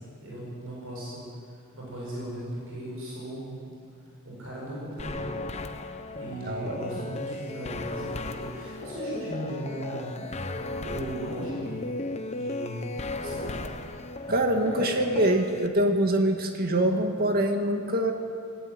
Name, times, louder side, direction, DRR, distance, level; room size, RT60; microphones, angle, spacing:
voice 1, 0.2-3.7 4.2-5.3 6.1-10.3 10.8-11.9 12.1-13.7, right 1 dB, 70° right, -5 dB, 7.6 m, -37 dB
sound 1, 5.0-15.7, left 2 dB, 30° left, 1.0 m, -35 dB
voice 2, 6.4-6.8 14.3-18.1, right 1 dB, 45° right, 4 dB, 2.2 m, -24 dB
19.0 x 18.5 x 9.2 m, 2.3 s
head